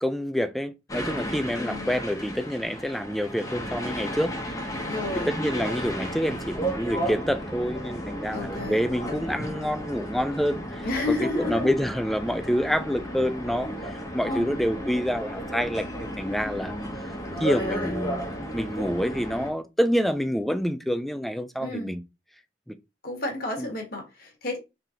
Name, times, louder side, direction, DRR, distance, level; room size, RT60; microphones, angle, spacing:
voice 1, 0.0-4.3 5.1-16.8 17.4-18.3 18.5-22.0 22.7-22.8 23.6-23.7, equal, ahead, 0.3 m, -27 dB
sound 1, 0.9-19.5, equal, 20° left, 0.9 m, -33 dB
voice 2, 1.5-1.9 4.8-5.3 8.3-8.9 10.8-11.7 14.3-14.5 17.3-17.9 21.6-21.9 23.0-24.6, left 2 dB, 55° left, 1.4 m, -31 dB
3.7 x 3.3 x 2.8 m
head